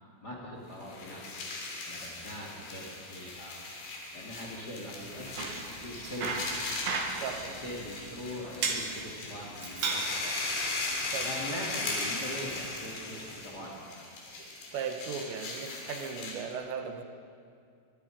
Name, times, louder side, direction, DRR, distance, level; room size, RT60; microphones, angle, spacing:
voice 1, 0.2-1.4 1.8-3.6 4.1-5.5 5.8-6.4 7.1-10.3 11.2-14.3, equal, 25° left, -2 dB, 2.5 m, -42 dB
sound 1, 0.7-16.5, left 3 dB, 70° left, 5.2 m, -38 dB
Bicycle, 5.1-13.4, right 4 dB, 65° right, 3.7 m, -38 dB
voice 2, 7.2-7.6 11.1-11.6 14.7-17.0, right 6 dB, 80° right, 6 dB, 3.4 m, -37 dB
23.0 x 22.5 x 5.1 m, 2.3 s
omnidirectional pair, 5.1 m